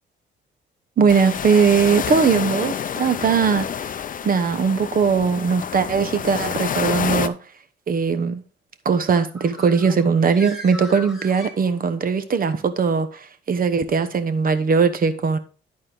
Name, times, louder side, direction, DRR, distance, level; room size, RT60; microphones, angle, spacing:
voice 1, 1.0-3.9 4.2-7.4 7.9-8.4 8.8-15.4, right 5 dB, 45° right, 1.1 m, -20 dB
sound 1, 1.1-7.3, left 8 dB, 45° left, 0.6 m, -28 dB
Bird, 9.2-12.2, equal, ahead, 3.0 m, -39 dB
12.0 x 4.3 x 3.8 m
cardioid pair, 90°, 20 cm